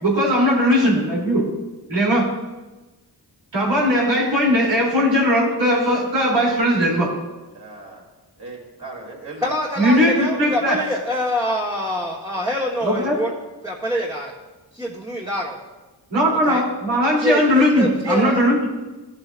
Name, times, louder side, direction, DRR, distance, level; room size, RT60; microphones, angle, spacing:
voice 1, 0.0-1.4 1.9-2.3 3.5-7.1 9.8-10.8 12.8-13.2 16.1-18.7, equal, 85° right, -5 dB, 3.4 m, -18 dB
voice 2, 7.5-8.1 8.4-9.5 10.2-10.6, right 2 dB, 45° right, -2 dB, 3.0 m, -37 dB
voice 3, 9.4-13.3 13.6-14.3 14.7-15.6 16.4-16.6 17.2-18.4, equal, 10° right, -4 dB, 1.4 m, -25 dB
14.0 x 7.5 x 2.6 m, 1.2 s
cardioid pair, 50°, 42 cm